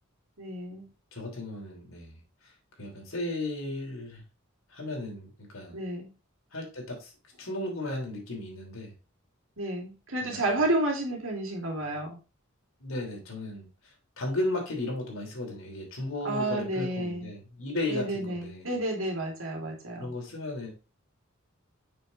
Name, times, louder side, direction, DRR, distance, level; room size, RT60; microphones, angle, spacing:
voice 1, 0.4-0.9 5.7-6.1 9.6-12.2 16.2-17.3 17.9-20.1, right 1 dB, 90° right, 1 dB, 2.6 m, -31 dB
voice 2, 1.1-2.2 2.8-4.2 4.7-5.8 6.5-7.1 7.4-8.9 10.2-10.6 12.8-13.7 14.2-18.7 20.0-20.7, left 1 dB, 85° left, 0 dB, 3.0 m, -35 dB
6.8 x 5.6 x 3.1 m, 0.31 s
head